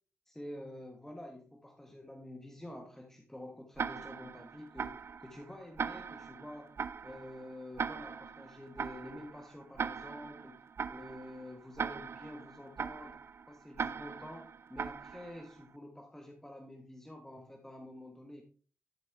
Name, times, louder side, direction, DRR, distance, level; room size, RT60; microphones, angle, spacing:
voice 1, 0.3-6.7 7.0-10.6 10.9-18.4, left 1 dB, 10° left, 2 dB, 1.3 m, -48 dB
Tick-tock, 3.8-15.6, right 6 dB, 60° right, 0.4 m, -41 dB
11.0 x 5.1 x 3.4 m, 0.40 s
wide cardioid pair, 85°, 5 cm